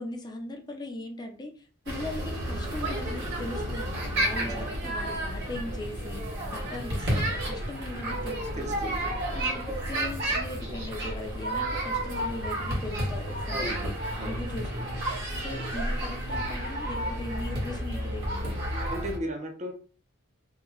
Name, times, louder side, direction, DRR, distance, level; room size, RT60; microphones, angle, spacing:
voice 1, 0.0-8.8 9.1-13.9 14.2-18.7, left 2 dB, 20° left, 3 dB, 0.4 m, -39 dB
sound 1, 1.9-19.2, right 1 dB, 55° right, 1.3 m, -31 dB
voice 2, 8.6-9.0 13.5-13.9 14.2-14.4 18.9-19.7, equal, 35° right, 3 dB, 0.6 m, -35 dB
2.9 x 2.1 x 3.7 m, 0.39 s
head